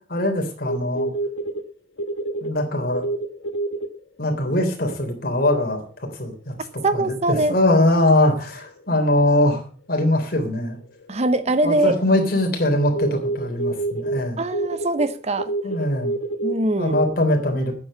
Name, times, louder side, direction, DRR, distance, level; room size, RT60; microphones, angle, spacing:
voice 1, 0.1-1.1 2.4-3.0 4.2-6.5 6.9-9.6 9.9-10.8 11.6-14.4 15.6-16.1 16.8-17.7, left 1 dB, 55° left, 3.6 m, -21 dB
sound 1, 0.7-1.6 2.0-2.5 2.9-3.9 5.7-5.8 8.0-8.1 11.0-11.1 11.3-12.0 12.3-12.5 12.9-14.2 14.5-16.6 16.9-17.1, right 2 dB, 90° left, 1.3 m, -26 dB
voice 2, 6.8-7.6 11.1-11.9 14.4-15.5 16.4-17.0, right 2 dB, 35° right, 0.8 m, -22 dB
9.6 x 7.8 x 8.4 m
head